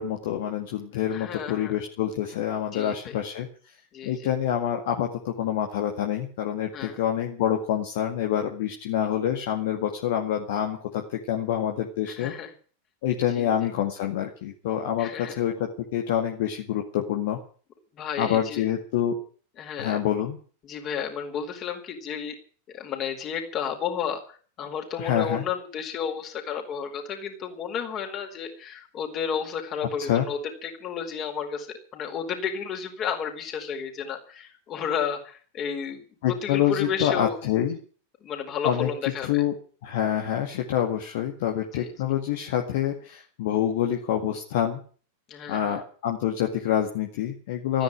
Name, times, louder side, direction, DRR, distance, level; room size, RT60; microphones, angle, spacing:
voice 1, 0.0-3.5 4.0-12.3 13.0-17.4 18.2-19.2 19.8-20.4 25.0-25.4 30.0-30.3 36.2-37.8 38.6-38.9 39.2-39.5 39.8-44.8 45.5-47.8, left 10 dB, 55° left, 3 dB, 2.0 m, -27 dB
voice 2, 1.1-1.7 2.7-3.2 3.9-4.3 6.7-7.0 12.1-12.5 13.3-13.5 15.0-15.4 17.9-18.6 19.6-20.0 20.6-22.3 22.7-31.7 31.9-37.4 38.2-39.3 41.7-41.9 45.3-45.8 47.7-47.8, left 7 dB, 30° left, 4 dB, 4.3 m, -32 dB
14.0 x 10.0 x 9.8 m, 0.43 s
figure-of-eight pair, 90°, 0 cm